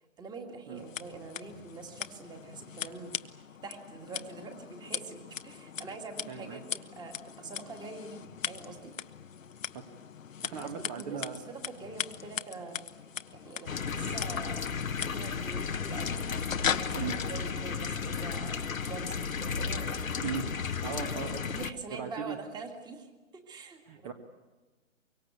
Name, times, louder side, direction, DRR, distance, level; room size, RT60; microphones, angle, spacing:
voice 1, 0.2-3.4 3.6-6.6 6.9-8.9 10.5-12.8 13.3-16.2 16.6-18.6 18.9-20.0 20.2-20.4 20.9-21.0 21.4-24.1, right 4 dB, 10° right, 5 dB, 2.3 m, -45 dB
Scissors, 0.8-17.3, left 8 dB, 75° left, 1.2 m, -40 dB
voice 2, 6.3-6.6 9.7-9.9 10.4-11.5 16.9-17.1 20.2-20.5 20.8-21.5 21.9-22.4 23.9-24.1, right 7 dB, 30° right, 6 dB, 1.7 m, -38 dB
sound 1, 13.7-21.7, left 5 dB, 90° left, 1.4 m, -34 dB
24.0 x 24.0 x 8.4 m, 1.2 s
hypercardioid pair, 145°, 40 cm